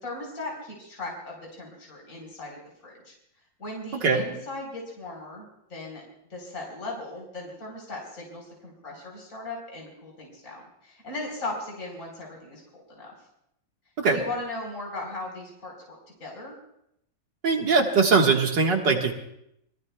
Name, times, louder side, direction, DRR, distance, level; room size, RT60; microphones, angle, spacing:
voice 1, 0.0-3.1 3.6-6.0 6.3-13.1 14.1-16.6, left 2 dB, 40° left, -2 dB, 4.6 m, -38 dB
voice 2, 17.4-19.1, right 4 dB, 70° right, 1 dB, 2.3 m, -21 dB
27.0 x 21.5 x 2.3 m, 0.78 s
omnidirectional pair, 2.0 m